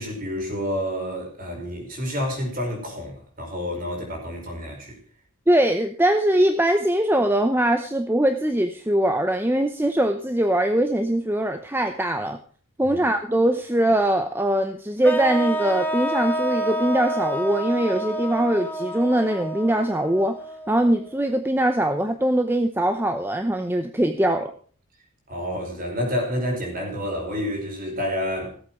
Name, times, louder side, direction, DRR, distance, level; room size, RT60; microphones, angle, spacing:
voice 1, 0.0-5.0 12.8-13.0 25.3-28.5, equal, 40° right, 4.9 m, -29 dB
voice 2, 5.5-12.4 12.8-20.4 20.7-24.5, right 1 dB, 10° right, 0.7 m, -22 dB
sound 1, 15.0-21.1, right 1 dB, 10° left, 1.1 m, -29 dB
17.0 x 8.2 x 5.8 m
head